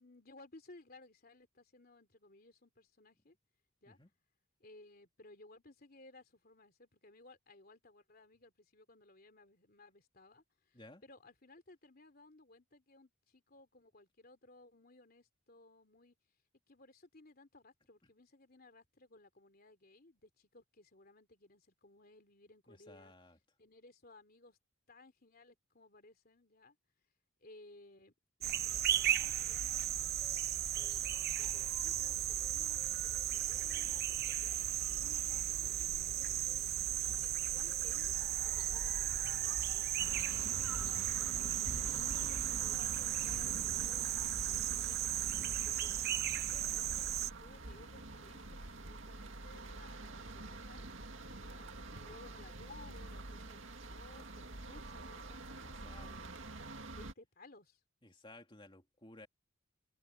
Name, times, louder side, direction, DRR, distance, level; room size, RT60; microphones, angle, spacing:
voice 1, 0.0-3.3 3.8-4.0 4.6-16.2 16.7-23.1 23.6-24.6 24.9-26.8 27.4-28.1 28.4-30.1 30.7-31.0 31.4-36.6 37.0-42.1 42.6-46.1 46.7-50.9 51.4-56.3 57.0-57.8, left 2 dB, 45° left, 3.2 m, -60 dB
voice 2, 22.7-23.4 36.9-37.3 46.5-46.8 55.6-56.1 58.0-59.3, left 2 dB, 25° left, 3.0 m, -57 dB
sound 1, 28.4-47.3, right 11 dB, 50° right, 0.9 m, -35 dB
sound 2, 40.0-57.1, right 2 dB, 65° right, 2.1 m, -47 dB
head